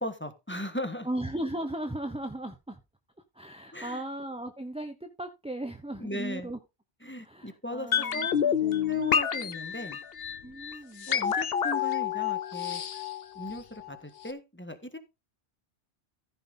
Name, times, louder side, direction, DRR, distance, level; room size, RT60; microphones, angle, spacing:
voice 1, 0.0-1.1 3.7-4.0 6.0-6.5 7.0-8.4 8.9-10.0 11.1-12.8 13.3-15.0, equal, 10° left, 1.5 m, -37 dB
voice 2, 1.0-2.8 3.3-6.6 7.2-8.3 8.6-9.0 10.4-11.1, right 1 dB, 5° right, 0.9 m, -37 dB
sound 1, 7.9-14.0 14.2-14.3, left 8 dB, 65° left, 1.1 m, -29 dB
15.0 x 5.6 x 3.9 m
omnidirectional pair, 1.1 m